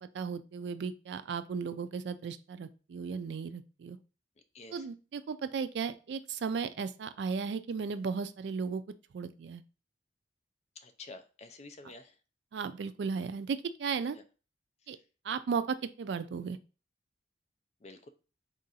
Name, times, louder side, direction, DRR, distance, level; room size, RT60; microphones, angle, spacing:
voice 1, 0.0-4.0 4.7-8.8 9.1-9.6 12.5-14.2 14.9-15.0 15.2-16.6, right 5 dB, 65° right, 13 dB, 0.3 m, -35 dB
voice 2, 4.5-4.9 10.8-12.1 14.1-14.2 17.8-18.1, left 3 dB, 35° left, 7 dB, 0.4 m, -49 dB
3.7 x 2.5 x 4.0 m, 0.34 s
head